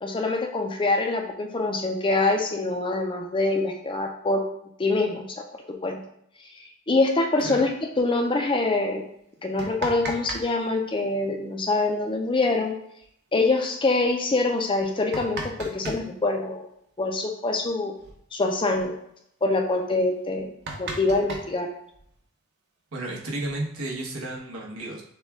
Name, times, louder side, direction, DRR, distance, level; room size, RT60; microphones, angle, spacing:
voice 1, 0.0-4.4 4.8-5.4 5.8-6.0 6.9-7.7 8.0-9.0 9.4-12.7 13.3-16.7 17.0-17.9 18.3-18.9 19.4-20.5 20.8-21.7, left 2 dB, 20° left, 2 dB, 0.5 m, -24 dB
sound 1, 9.4-10.5 10.7-10.8 12.6-12.7 13.0-13.1 13.7-13.9 14.7-16.1 17.6-17.7 18.0-18.2 18.5-18.9 19.4-19.5 19.9-20.0 20.3-22.2 23.1-23.9, right 2 dB, 50° right, 0.8 m, -36 dB
voice 2, 22.9-25.0, right 2 dB, 75° right, -2 dB, 1.1 m, -32 dB
6.3 x 2.3 x 3.5 m, 0.73 s
head